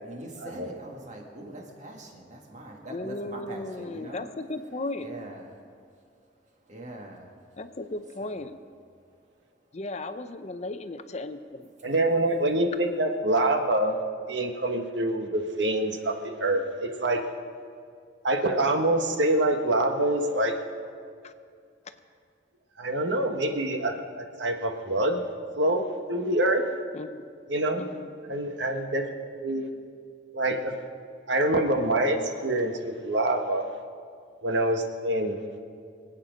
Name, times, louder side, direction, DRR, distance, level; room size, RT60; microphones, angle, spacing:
voice 1, 0.0-4.3 5.0-5.6 6.6-7.4 8.2-8.5, right 1 dB, 40° right, 1 dB, 2.0 m, -43 dB
voice 2, 2.9-5.1 7.6-8.6 9.7-11.7 21.2-21.3 26.9-27.2 27.8-28.1, left 2 dB, 35° left, 10 dB, 0.6 m, -36 dB
voice 3, 11.8-14.0 14.3-17.2 18.2-20.5 22.8-25.2 25.6-26.6 27.5-27.9 28.2-29.7 30.3-30.7 31.3-33.7 34.4-35.4, right 1 dB, 70° right, 4 dB, 1.4 m, -26 dB
24.5 x 8.8 x 5.1 m, 2.3 s
head